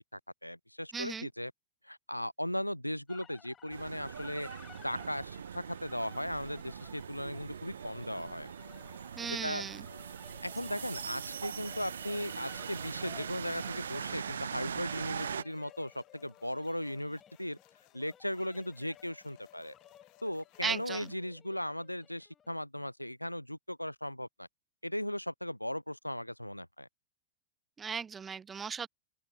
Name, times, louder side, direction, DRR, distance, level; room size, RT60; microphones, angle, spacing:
voice 1, 0.0-1.5 1.8-4.5 4.8-8.5 9.4-9.6 10.4-17.6 17.9-19.7 20.2-24.5 24.8-26.9, left 1 dB, 90° left, 0.6 m, -37 dB
voice 2, 0.9-1.3 9.2-9.9 20.6-21.1 27.8-28.9, right 6 dB, 20° right, 0.6 m, -36 dB
sound 1, 3.1-22.5, left 8 dB, 25° left, 4.9 m, -58 dB
sound 2, 3.7-15.4, right 7 dB, 70° right, 0.7 m, -41 dB
sound 3, 7.6-21.2, left 30 dB, 45° left, 1.1 m, -60 dB
open air
figure-of-eight pair, 90°, 0 cm